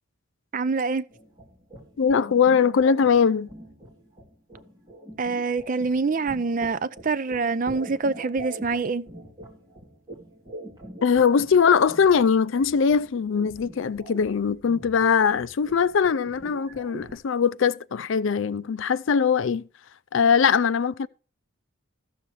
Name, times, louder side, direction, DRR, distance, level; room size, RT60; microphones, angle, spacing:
voice 1, 0.5-1.0 5.2-9.0, right 4 dB, 40° right, 0.4 m, -25 dB
sound 1, 1.1-17.2, right 1 dB, 20° right, 2.7 m, -44 dB
voice 2, 2.0-3.5 11.0-19.7 20.1-21.1, left 6 dB, 60° left, 0.4 m, -21 dB
14.5 x 6.9 x 3.1 m
head